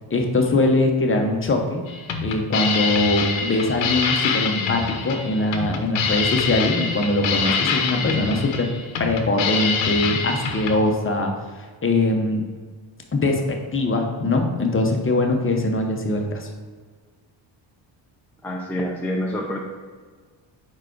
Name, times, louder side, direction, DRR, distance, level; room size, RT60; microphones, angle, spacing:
voice 1, 0.1-1.8 2.2-8.7 9.0-11.3 11.8-12.4 13.1-16.5, left 2 dB, 25° left, 3 dB, 0.8 m, -22 dB
sound 1, 1.9-10.7, left 5 dB, 70° left, 0.9 m, -25 dB
voice 2, 18.4-19.6, equal, 5° left, -1 dB, 0.5 m, -27 dB
4.8 x 4.7 x 4.5 m, 1.5 s
cardioid pair, 125°, 48 cm